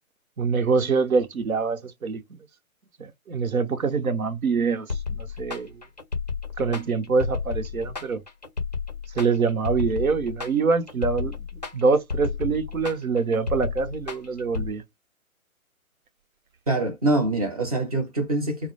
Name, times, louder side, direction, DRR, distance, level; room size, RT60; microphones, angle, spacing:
voice 1, 0.4-2.4 3.0-5.8 6.6-8.2 9.1-14.8, right 4 dB, 75° right, 0.7 m, -25 dB
sound 1, 4.9-14.7, left 5 dB, 30° left, 0.4 m, -32 dB
voice 2, 16.7-18.7, right 2 dB, 25° right, 0.6 m, -24 dB
2.2 x 2.0 x 2.8 m
figure-of-eight pair, 140°, 43 cm